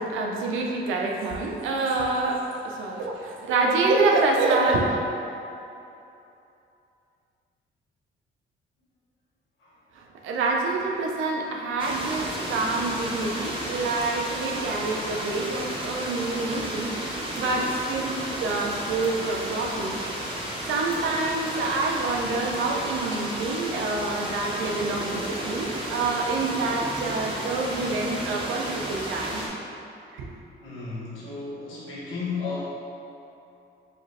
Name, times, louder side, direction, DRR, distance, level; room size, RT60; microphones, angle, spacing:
voice 1, 0.0-5.0 10.0-19.9 20.7-29.4 30.1-30.3, right 3 dB, 80° right, 0 dB, 0.6 m, -27 dB
sound 1, 11.8-29.5, right 1 dB, 25° right, 0.8 m, -33 dB
voice 2, 30.6-32.7, left 4 dB, 85° left, -8 dB, 1.2 m, -33 dB
4.9 x 2.6 x 3.2 m, 2.8 s
cardioid pair, 90°, 20 cm